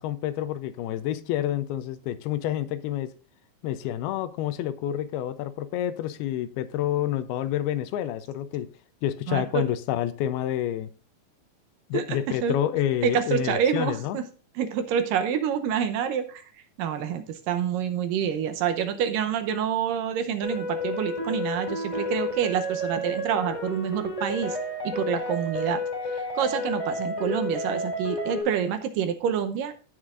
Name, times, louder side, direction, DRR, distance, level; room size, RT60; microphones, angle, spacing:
voice 1, 0.0-3.1 3.6-8.7 9.0-10.9 11.9-14.2, left 12 dB, 85° left, 2.7 m, -28 dB
voice 2, 9.3-9.6 11.9-12.5 13.0-14.2 14.6-16.4 16.8-24.6 24.8-25.8 26.1-29.7, right 8 dB, 75° right, 2.3 m, -27 dB
sound 1, 20.4-28.4, left 1 dB, 10° left, 2.0 m, -31 dB
16.0 x 6.4 x 2.5 m
omnidirectional pair, 4.4 m